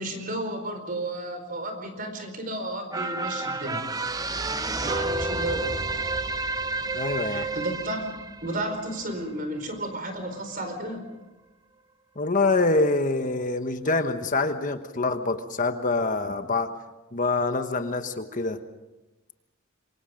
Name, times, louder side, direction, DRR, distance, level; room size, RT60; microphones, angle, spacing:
voice 1, 0.0-3.8 4.8-5.8 7.2-8.1 8.4-11.1, right 1 dB, 45° right, 7 dB, 4.6 m, -32 dB
sound 1, 2.9-9.6 10.0-10.1, right 3 dB, 20° right, 0.7 m, -30 dB
voice 2, 6.9-7.5 12.2-16.7 17.1-18.6, left 3 dB, 40° left, 8 dB, 1.2 m, -25 dB
27.5 x 23.5 x 5.2 m, 1.1 s
head